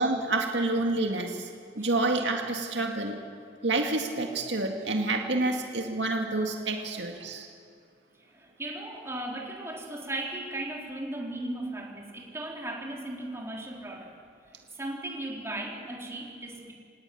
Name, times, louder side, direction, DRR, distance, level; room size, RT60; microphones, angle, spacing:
voice 1, 0.0-1.5 1.8-3.2 3.6-7.5, right 2 dB, 75° right, 3 dB, 2.1 m, -28 dB
voice 2, 8.3-14.1 14.7-16.7, right 1 dB, 15° right, -1 dB, 3.8 m, -36 dB
26.0 x 18.5 x 9.3 m, 2.2 s
head